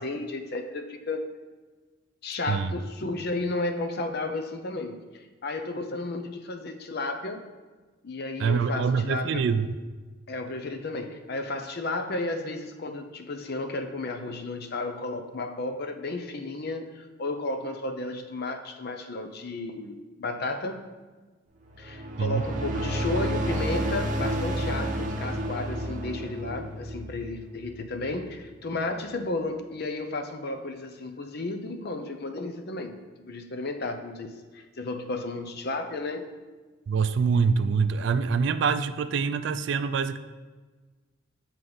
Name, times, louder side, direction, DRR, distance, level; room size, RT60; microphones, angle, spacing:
voice 1, 0.0-1.3 2.2-7.5 8.0-9.5 10.3-20.9 21.8-36.3, left 2 dB, 50° left, 6 dB, 0.6 m, -33 dB
voice 2, 8.4-9.8 22.2-22.4 36.9-40.2, right 5 dB, 60° right, 12 dB, 0.3 m, -25 dB
sound 1, 21.6-28.2, right 1 dB, 40° right, 0.7 m, -31 dB
7.9 x 4.4 x 3.9 m, 1.3 s
head